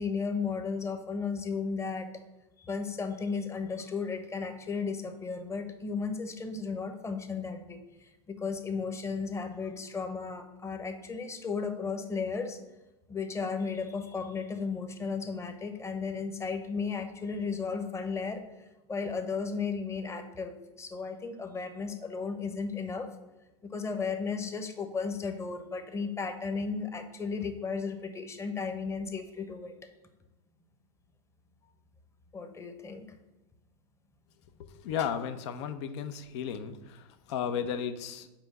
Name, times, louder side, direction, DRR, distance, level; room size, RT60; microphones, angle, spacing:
voice 1, 0.0-2.2 2.6-12.6 13.1-18.4 18.9-23.1 23.6-29.7 32.3-33.1, left 5 dB, 15° left, 7 dB, 1.0 m, -34 dB
voice 2, 34.8-38.3, left 8 dB, 60° left, 11 dB, 0.8 m, -34 dB
5.9 x 4.9 x 6.7 m, 1.0 s
hypercardioid pair, 105°, 16 cm